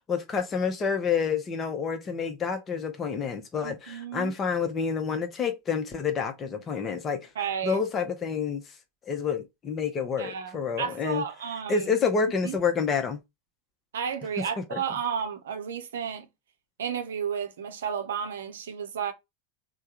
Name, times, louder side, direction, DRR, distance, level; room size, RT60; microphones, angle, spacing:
voice 1, 0.1-7.3 7.6-8.7 9.1-11.2 11.7-13.2 14.6-14.8, left 6 dB, 25° left, 0.7 m, -28 dB
voice 2, 3.6-4.3 7.4-7.8 10.2-11.9 12.4-12.5 13.9-16.3 16.8-19.1, right 7 dB, 65° right, 0.6 m, -32 dB
3.4 x 2.1 x 2.9 m
figure-of-eight pair, 85°, 0 cm